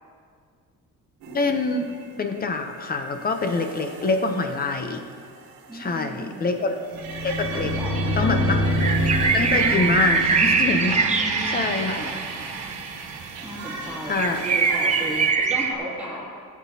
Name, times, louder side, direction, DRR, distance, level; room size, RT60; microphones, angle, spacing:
sound 1, 1.2-15.3, right 5 dB, 85° right, 1.4 m, -34 dB
voice 1, 1.3-1.9 2.2-5.0 5.7-6.9 7.2-7.7 8.2-8.6 9.3-11.0 11.5-12.1 14.0-14.4, left 3 dB, 25° left, 6 dB, 0.6 m, -25 dB
voice 2, 5.7-6.4 7.6-8.4 11.0-12.5 13.4-16.3, right 1 dB, 5° right, -7 dB, 2.5 m, -35 dB
sound 2, 6.9-11.9, equal, 90° left, 2.5 m, -26 dB
sound 3, 7.7-7.8 8.5-12.9 13.2-13.3 13.5-13.6 13.9-15.7, right 4 dB, 20° right, 0.5 m, -23 dB
17.5 x 8.3 x 2.7 m, 2.1 s
cardioid pair, 170°, 34 cm